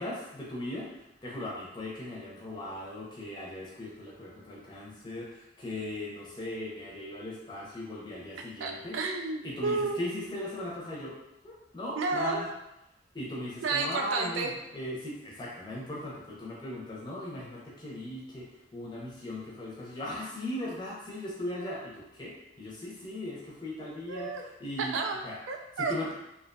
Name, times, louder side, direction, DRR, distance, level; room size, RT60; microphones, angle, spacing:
voice 1, 0.0-9.0 9.4-11.2 11.4-12.5 13.1-24.9 25.2-25.4 25.8-26.1, left 1 dB, 25° left, -5 dB, 0.5 m, -38 dB
voice 2, 8.6-10.3 12.0-12.5 13.6-14.5 23.8-24.4 24.8-25.9, right 4 dB, 90° right, 4 dB, 0.3 m, -32 dB
2.4 x 2.2 x 2.5 m, 0.89 s
head